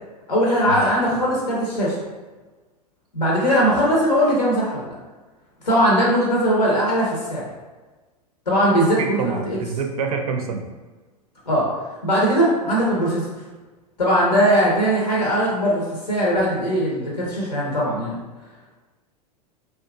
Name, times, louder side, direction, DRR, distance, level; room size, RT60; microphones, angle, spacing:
voice 1, 0.3-2.0 3.1-4.9 5.6-7.5 8.5-9.6 11.5-11.7 12.0-13.3 14.0-18.2, equal, 85° left, -4 dB, 0.6 m, -20 dB
voice 2, 9.0-10.6, right 5 dB, 65° right, 4 dB, 0.4 m, -26 dB
2.7 x 2.3 x 2.3 m, 1.3 s
figure-of-eight pair, 90°, 20 cm